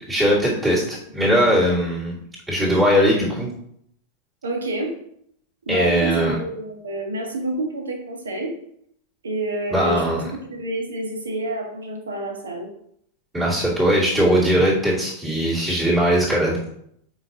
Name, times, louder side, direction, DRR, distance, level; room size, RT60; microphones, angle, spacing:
voice 1, 0.0-2.2 2.5-3.5 5.7-6.3 9.7-10.3 13.3-16.6, equal, 15° right, -8 dB, 2.7 m, -20 dB
voice 2, 4.4-4.9 5.6-8.5 9.2-10.2 10.5-12.7, right 1 dB, 70° right, 2 dB, 1.6 m, -28 dB
7.8 x 5.5 x 2.8 m, 0.71 s
figure-of-eight pair, 90°, 0 cm